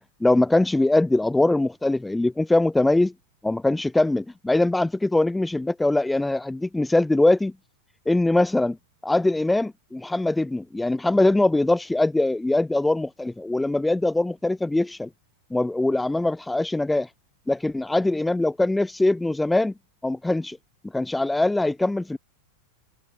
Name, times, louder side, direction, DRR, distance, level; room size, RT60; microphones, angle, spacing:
voice 1, 0.0-3.1 3.4-7.5 8.1-8.8 9.0-15.1 15.5-17.1 17.5-19.7 20.0-20.6 20.9-22.2, left 2 dB, 5° left, 0.5 m, -22 dB
figure-of-eight pair, 90°, 0 cm